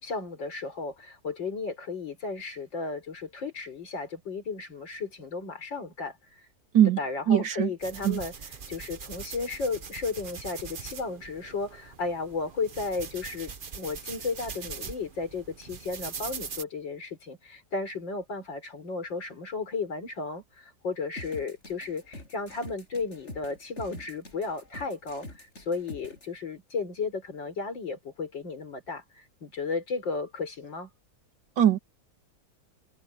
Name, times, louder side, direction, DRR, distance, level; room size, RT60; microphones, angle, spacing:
voice 1, 0.0-6.2 7.0-8.3 8.7-30.9, left 4 dB, 80° left, 5.1 m, -34 dB
voice 2, 7.3-7.7 8.0-8.2 31.6-31.8, right 10 dB, 80° right, 2.4 m, -21 dB
sound 1, 7.8-16.6, right 6 dB, 35° right, 0.9 m, -42 dB
sound 2, 21.2-26.3, left 1 dB, 35° left, 6.8 m, -45 dB
omnidirectional pair, 2.0 m